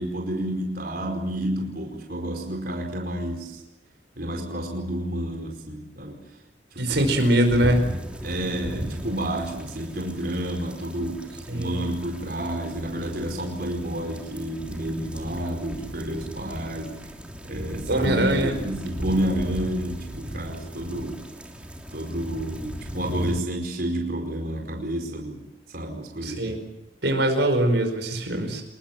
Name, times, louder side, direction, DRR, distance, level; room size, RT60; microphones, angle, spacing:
voice 1, 0.0-3.6 4.2-6.2 6.7-7.1 8.2-17.0 17.4-21.2 21.9-25.4 25.7-26.5, right 1 dB, 55° right, 2 dB, 4.8 m, -30 dB
voice 2, 6.8-7.9 11.5-11.8 17.9-18.6 26.2-26.6 27.0-28.6, right 1 dB, 75° right, 5 dB, 5.0 m, -22 dB
sound 1, 7.0-23.4, equal, 5° right, 3.1 m, -37 dB
27.0 x 21.5 x 7.5 m, 0.88 s
head